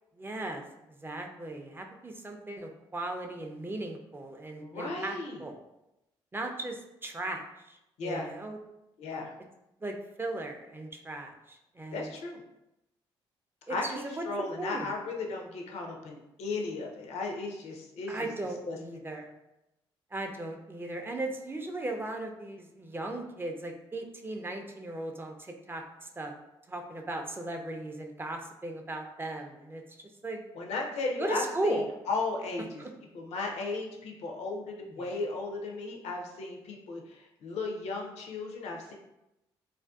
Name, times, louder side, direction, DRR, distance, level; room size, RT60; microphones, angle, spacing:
voice 1, 0.2-0.6 1.0-5.6 6.3-8.6 9.8-12.1 13.7-14.2 14.6-14.9 18.1-19.3 20.1-26.3 26.7-29.8 30.2-30.4 31.2-31.9 32.8-32.9 35.0-35.1, right 2 dB, 20° right, 3 dB, 0.4 m, -37 dB
voice 2, 4.6-5.4 8.0-8.3 9.0-9.3 11.9-12.4 13.7-18.3 18.6-18.8 30.5-32.8 33.1-38.9, left 3 dB, 70° left, 1 dB, 0.5 m, -35 dB
2.4 x 2.2 x 2.3 m, 0.89 s
supercardioid pair, 55°, 12 cm